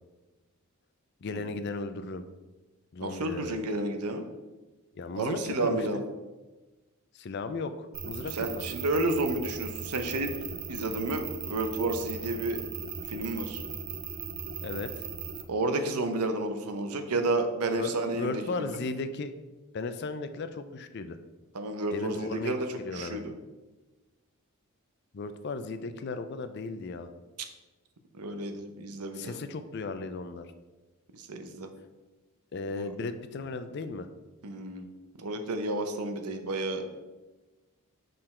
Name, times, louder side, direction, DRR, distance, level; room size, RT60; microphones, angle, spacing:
voice 1, 1.2-2.2 2.9-3.6 5.0-6.0 7.1-8.7 14.6-15.0 17.8-19.3 19.7-21.2 21.9-23.2 25.1-27.1 29.1-30.5 32.5-34.1, left 3 dB, 50° left, 10 dB, 0.4 m, -36 dB
voice 2, 3.0-4.3 5.2-6.0 8.3-10.3 10.7-12.6 13.1-13.6 15.5-18.8 21.5-23.4 28.1-29.4 31.1-31.7 32.8-32.9 34.4-34.9 35.2-36.8, right 2 dB, 90° right, 7 dB, 0.7 m, -31 dB
sound 1, 7.9-15.4, right 6 dB, 40° right, 0.5 m, -38 dB
6.6 x 3.9 x 4.3 m, 1.2 s
head